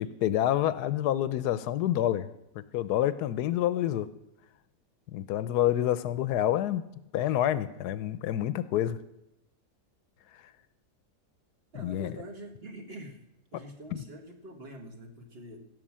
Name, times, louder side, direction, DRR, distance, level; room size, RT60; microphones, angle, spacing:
voice 1, 0.0-2.3 2.7-4.1 5.1-6.8 7.1-9.0 11.8-12.1, left 12 dB, 80° left, 14 dB, 1.1 m, -27 dB
voice 2, 11.7-13.2 13.5-15.6, right 1 dB, 40° right, 3 dB, 1.7 m, -45 dB
16.5 x 5.5 x 7.4 m, 0.86 s
omnidirectional pair, 1.7 m